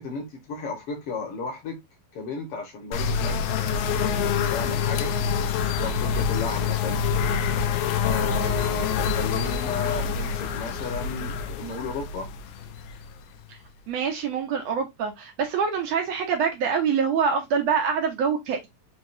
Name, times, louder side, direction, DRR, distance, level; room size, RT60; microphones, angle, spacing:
voice 1, 0.0-1.8 2.1-5.2 5.8-7.0 8.0-12.3, left 3 dB, 55° left, 1.9 m, -34 dB
sound 1, 2.9-13.5, left 6 dB, 90° left, 2.3 m, -26 dB
voice 2, 13.9-18.7, right 6 dB, 75° right, 1.6 m, -25 dB
5.8 x 2.8 x 2.6 m
omnidirectional pair, 3.9 m